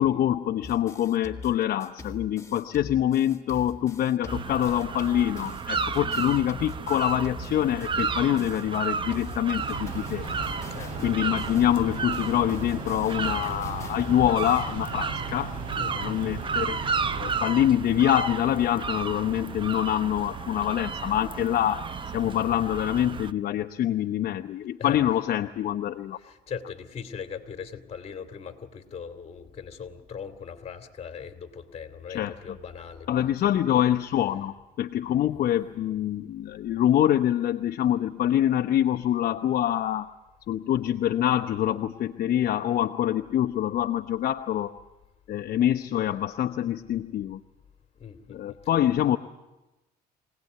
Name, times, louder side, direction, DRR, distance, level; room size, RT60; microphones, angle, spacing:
voice 1, 0.0-10.2 11.0-16.8 17.2-21.9 22.1-26.2 32.1-32.3 33.1-40.1 40.5-44.7 45.3-47.4 48.3-49.2, left 11 dB, 60° left, 7 dB, 0.8 m, -25 dB
sound 1, 0.6-8.8 9.1-14.6, left 3 dB, 15° left, 2.0 m, -43 dB
sound 2, 4.3-23.3, right 6 dB, 30° right, 0.8 m, -33 dB
Train, 9.6-17.4, right 3 dB, 50° right, 6.8 m, -37 dB
voice 2, 15.8-16.2 24.8-25.1 26.2-33.3 47.9-48.6, left 7 dB, 40° left, 7 dB, 2.5 m, -39 dB
24.5 x 18.0 x 9.3 m, 1.0 s
cardioid pair, 110°, 17 cm